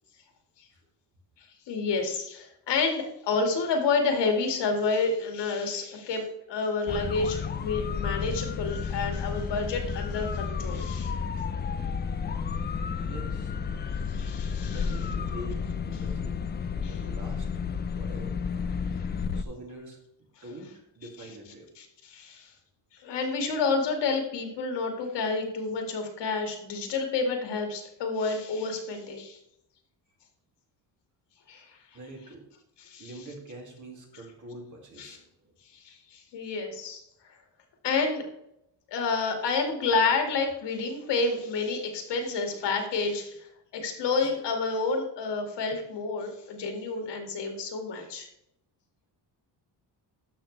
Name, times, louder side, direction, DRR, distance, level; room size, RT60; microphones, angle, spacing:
voice 1, 1.7-11.1 14.1-14.8 16.8-17.0 21.8-22.5 22.9-29.4 31.5-31.8 32.9-33.1 35.0-35.2 35.7-37.0 37.8-38.2 38.9-48.3, left 4 dB, 75° left, 4 dB, 2.1 m, -29 dB
sound 1, 6.9-19.4, left 6 dB, 25° left, 0.4 m, -32 dB
voice 2, 13.0-13.5 14.6-16.5 16.8-17.6 17.9-18.4 19.3-21.7 31.9-32.5 33.0-35.5 44.2-44.3, right 1 dB, 45° right, 0 dB, 2.5 m, -45 dB
13.0 x 5.8 x 3.3 m, 0.79 s
cardioid pair, 135°, 43 cm